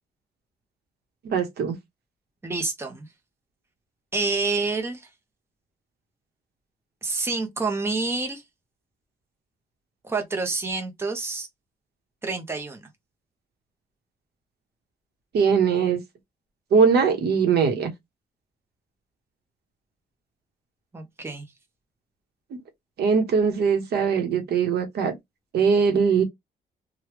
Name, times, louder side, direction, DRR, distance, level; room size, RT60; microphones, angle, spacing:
voice 1, 1.2-1.7 15.3-16.0 16.7-17.9 23.0-25.1 25.5-26.2, right 6 dB, 80° right, 1.0 m, -21 dB
voice 2, 2.4-3.1 4.1-5.1 7.0-8.4 10.0-11.5 12.2-12.9 20.9-21.5, right 3 dB, 15° right, 0.8 m, -28 dB
3.0 x 2.3 x 3.3 m
cardioid pair, 130°, 17 cm